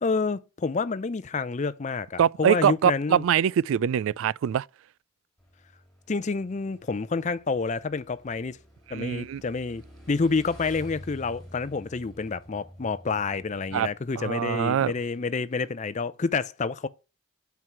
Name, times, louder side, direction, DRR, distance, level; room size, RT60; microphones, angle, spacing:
voice 1, 0.0-3.2 6.1-8.6 8.9-16.9, left 4 dB, 35° left, 0.5 m, -28 dB
voice 2, 2.2-4.7 8.9-9.4 13.7-13.9 14.2-14.9, right 9 dB, 80° right, 0.3 m, -23 dB
Motorcycle / Engine, 5.4-15.1, equal, ahead, 3.8 m, -50 dB
7.6 x 4.7 x 5.5 m
head